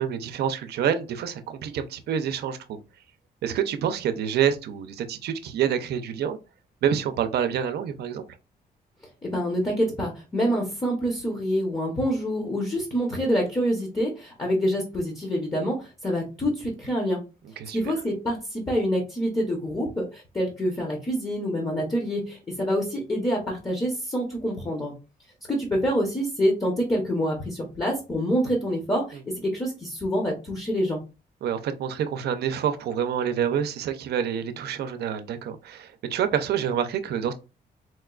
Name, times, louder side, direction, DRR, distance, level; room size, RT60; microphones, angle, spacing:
voice 1, 0.0-2.8 3.4-6.4 6.8-8.2 17.6-17.8 31.4-37.3, right 8 dB, 80° right, 0.5 m, -27 dB
voice 2, 9.2-17.2 17.7-24.9 25.5-31.0, equal, 20° left, 0.8 m, -26 dB
4.2 x 2.2 x 2.3 m
cardioid pair, 135°, 17 cm